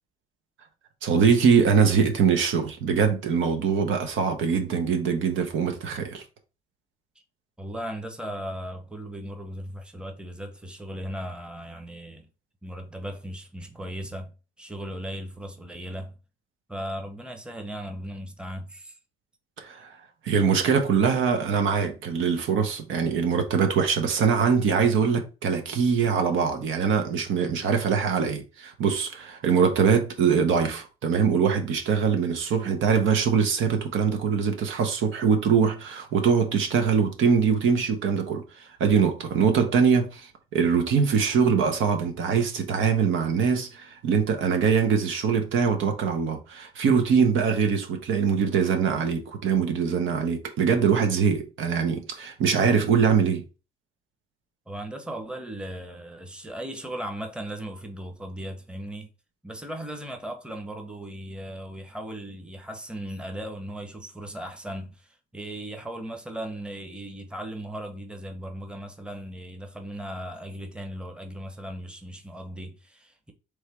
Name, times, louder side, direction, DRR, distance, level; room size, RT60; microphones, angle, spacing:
voice 1, 1.0-6.2 19.6-19.9 20.2-53.4, right 6 dB, 75° right, 1.0 m, -23 dB
voice 2, 7.6-12.3 12.6-14.3 14.6-16.1 16.7-19.0 54.7-59.1 59.4-73.3, right 1 dB, 5° right, 0.9 m, -37 dB
3.5 x 3.2 x 4.4 m
cardioid pair, 90°, 20 cm